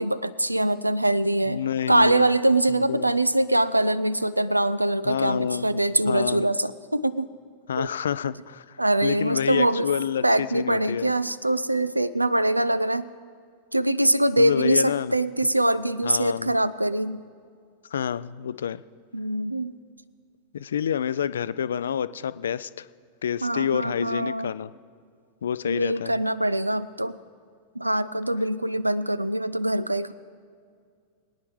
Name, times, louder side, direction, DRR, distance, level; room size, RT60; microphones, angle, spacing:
voice 1, 0.0-7.3 7.8-7.9 8.8-9.9 10.2-13.1 13.7-17.2 19.1-19.7 23.4-24.5 25.7-27.2 27.8-30.1, right 1 dB, 85° right, 17 dB, 0.3 m, -23 dB
voice 2, 1.5-2.3 2.7-3.0 5.1-5.8 6.1-6.5 7.7-11.1 14.4-15.1 16.0-16.5 17.9-18.8 20.5-22.9 23.2-24.7 25.4-26.2, left 8 dB, 65° left, 16 dB, 0.3 m, -28 dB
22.0 x 9.6 x 3.2 m, 2.2 s
figure-of-eight pair, 90°, 0 cm